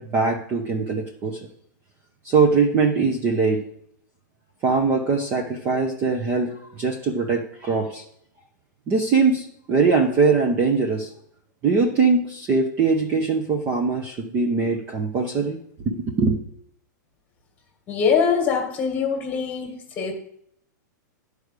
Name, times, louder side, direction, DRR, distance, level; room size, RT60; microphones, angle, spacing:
voice 1, 0.0-1.4 2.2-3.6 4.6-8.0 8.9-11.1 11.6-16.4, right 4 dB, 15° right, 2 dB, 0.7 m, -22 dB
voice 2, 17.9-20.1, left 6 dB, 15° left, 4 dB, 1.5 m, -23 dB
11.0 x 4.8 x 6.6 m, 0.71 s
supercardioid pair, 175°, 10 cm